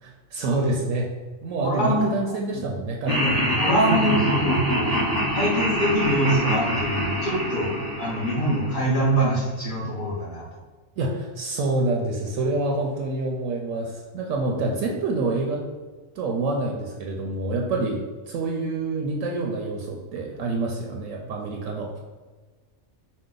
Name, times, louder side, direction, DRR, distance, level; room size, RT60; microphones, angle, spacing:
voice 1, 0.0-1.1 1.4-3.5 11.0-15.6 16.2-18.0 18.3-21.9, right 2 dB, 70° right, 0 dB, 0.9 m, -27 dB
voice 2, 1.6-2.1 2.5-2.7 3.2-4.9 5.3-7.7 8.0-10.4, right 1 dB, 40° left, -5 dB, 1.1 m, -24 dB
Laughter, 3.1-9.3, equal, 25° right, 0.5 m, -25 dB
5.1 x 2.2 x 3.8 m, 1.4 s
omnidirectional pair, 1.4 m